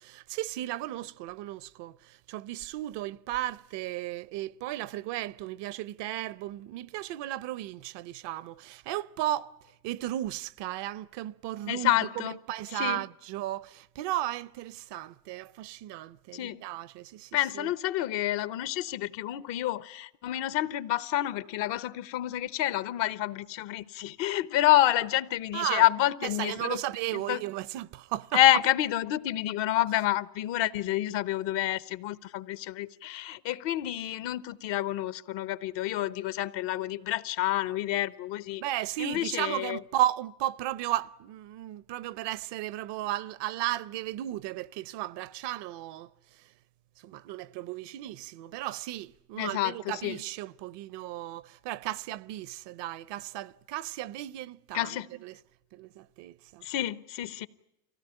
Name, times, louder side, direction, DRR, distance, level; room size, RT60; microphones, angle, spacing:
voice 1, 0.0-9.5 9.8-17.7 25.5-25.9 26.2-28.4 38.6-46.1 46.4-46.5 47.0-55.4 55.7-56.7, right 14 dB, 60° right, 0.7 m, -35 dB
voice 2, 11.7-12.4 12.7-13.0 16.3-16.6 17.3-26.8 27.1-27.4 28.3-38.6 39.0-39.8 49.4-50.2 54.7-55.1 56.6-57.5, left 14 dB, 65° left, 1.0 m, -28 dB
24.5 x 16.5 x 10.0 m
supercardioid pair, 90°, 48 cm